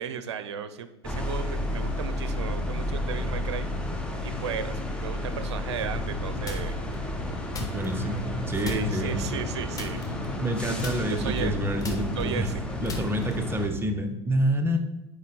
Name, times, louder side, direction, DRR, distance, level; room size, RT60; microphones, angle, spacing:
voice 1, 0.0-3.7 4.2-6.8 8.6-10.0 11.1-11.7 12.2-12.6, right 7 dB, 75° right, 12 dB, 0.6 m, -35 dB
sound 1, 1.0-13.7, left 1 dB, 5° left, 1.1 m, -31 dB
sound 2, 6.5-7.0 7.5-8.3 8.6-9.1 9.7-10.5 10.8-13.6, left 2 dB, 25° left, 1.3 m, -40 dB
voice 2, 7.6-9.2 10.4-12.5 12.8-14.8, equal, 15° right, 5 dB, 0.9 m, -28 dB
9.4 x 3.2 x 4.1 m, 1.0 s
figure-of-eight pair, 75°, 14 cm